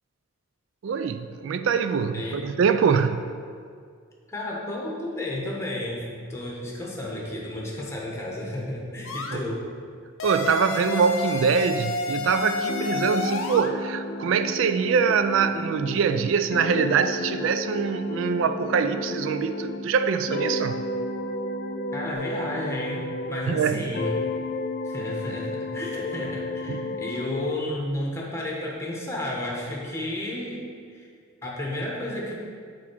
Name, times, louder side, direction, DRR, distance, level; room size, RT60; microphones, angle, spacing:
voice 1, 0.8-3.2 9.3-9.4 10.2-20.8 23.5-23.8 26.7-26.9, right 6 dB, 75° right, 10 dB, 0.3 m, -24 dB
voice 2, 4.3-9.6 21.9-24.1 24.8-30.6 30.9-31.1 31.4-32.3, left 1 dB, 15° left, -3 dB, 1.2 m, -32 dB
sound 1, 9.1-9.4 10.2-13.7, left 3 dB, 85° left, 0.6 m, -30 dB
sound 2, 12.1-22.1, right 3 dB, 25° right, 1.1 m, -39 dB
sound 3, 12.7-19.9 20.3-23.6 23.9-27.6, left 3 dB, 45° left, 0.3 m, -33 dB
5.9 x 4.7 x 6.1 m, 2.2 s
head